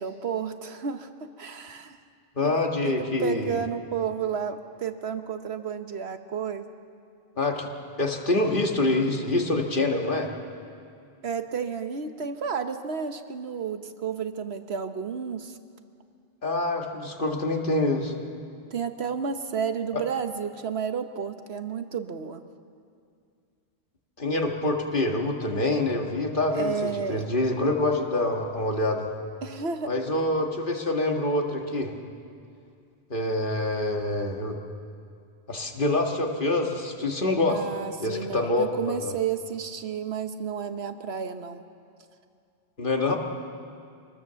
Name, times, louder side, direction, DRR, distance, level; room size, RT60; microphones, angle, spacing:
voice 1, 0.0-2.0 2.4-2.6 2.8-6.6 11.2-15.6 18.7-22.4 26.5-27.3 29.4-29.9 37.5-41.6, right 6 dB, 70° right, 8 dB, 1.3 m, -31 dB
voice 2, 2.4-3.6 7.4-7.7 8.0-10.3 16.4-18.1 19.9-20.0 24.2-26.7 27.1-29.1 29.9-31.9 33.1-34.6 35.5-37.6 38.0-39.1 42.8-43.2, left 2 dB, 50° left, 2 dB, 2.1 m, -26 dB
25.0 x 19.5 x 7.0 m, 2.3 s
omnidirectional pair, 1.1 m